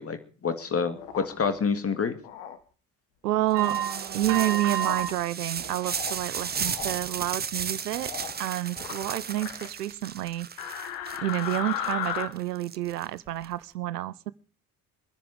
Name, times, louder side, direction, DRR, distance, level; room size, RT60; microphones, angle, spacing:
voice 1, 0.0-2.1, left 5 dB, 30° left, 2.3 m, -28 dB
sound 1, 1.0-1.5 2.2-2.6 3.3-3.8 4.7-5.1 5.6-6.2 6.5-6.9 7.9-8.4 8.7-9.7 10.6-12.3, left 10 dB, 65° left, 1.8 m, -36 dB
voice 2, 3.2-3.8 4.1-8.1 8.4-10.8 11.2-14.3, right 14 dB, 75° right, 0.8 m, -29 dB
sound 2, 3.5-5.1 5.5-6.1 6.5-6.7 7.2-7.3, right 10 dB, 60° right, 1.6 m, -31 dB
sound 3, 3.6-13.5, right 6 dB, 20° right, 0.9 m, -35 dB
23.5 x 10.0 x 5.1 m
figure-of-eight pair, 50°, 47 cm